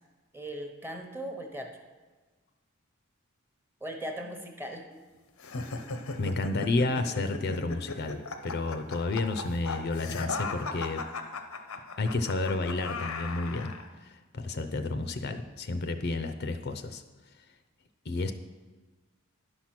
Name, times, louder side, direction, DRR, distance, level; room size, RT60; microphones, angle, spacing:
voice 1, 0.3-1.8 3.8-4.9, right 1 dB, 10° right, 3 dB, 0.9 m, -38 dB
sound 1, 5.4-13.9, left 3 dB, 85° left, 0.8 m, -37 dB
voice 2, 6.2-11.0 12.0-13.7 14.0-17.0 18.1-18.3, left 2 dB, 50° left, 8 dB, 0.5 m, -31 dB
10.5 x 6.0 x 5.9 m, 1.3 s
head